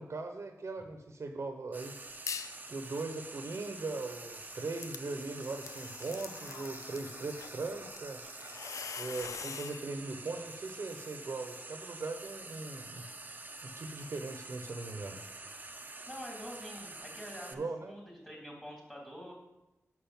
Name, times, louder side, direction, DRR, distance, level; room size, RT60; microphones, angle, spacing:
voice 1, 0.0-2.0 2.7-8.2 9.0-13.0 13.6-15.2 17.5-17.9, right 3 dB, 60° right, 5 dB, 0.9 m, -40 dB
Frying (food), 1.7-17.5, right 2 dB, 30° right, 0.7 m, -47 dB
sound 1, 2.3-2.6 3.0-9.8, left 6 dB, 85° left, 0.4 m, -45 dB
voice 2, 16.1-19.3, equal, 10° left, -2 dB, 3.7 m, -46 dB
6.2 x 5.8 x 7.1 m, 0.96 s
cardioid pair, 65°, 5 cm